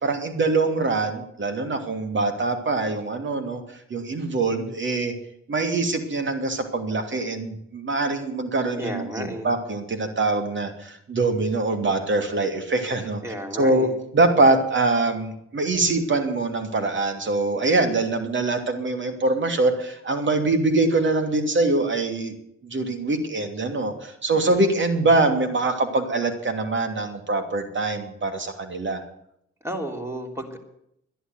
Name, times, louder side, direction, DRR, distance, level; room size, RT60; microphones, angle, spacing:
voice 1, 0.0-3.6 3.9-5.1 5.5-13.2 13.5-13.9 14.1-22.3 22.6-29.0, right 3 dB, 40° right, 8 dB, 2.7 m, -23 dB
voice 2, 8.8-9.5 13.2-13.9 29.6-30.6, equal, 10° right, 2 dB, 3.4 m, -32 dB
11.5 x 11.0 x 8.0 m, 0.75 s
supercardioid pair, 60°, 29 cm